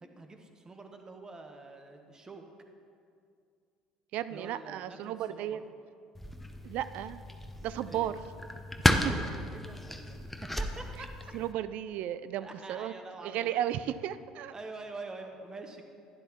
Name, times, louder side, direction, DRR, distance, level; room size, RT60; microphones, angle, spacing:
voice 1, 0.0-2.4 4.3-5.6 7.9-8.1 9.1-11.3 12.4-13.6 14.5-15.8, right 3 dB, 25° right, 5 dB, 1.1 m, -46 dB
voice 2, 4.1-5.6 6.6-7.2 7.6-8.2 9.0-9.1 11.3-12.9 13.2-14.5, right 11 dB, 60° right, 14 dB, 0.3 m, -34 dB
sound 1, 6.1-11.5, left 1 dB, 5° left, 0.8 m, -33 dB
11.5 x 9.9 x 3.1 m, 2.3 s
hypercardioid pair, 65°, 3 cm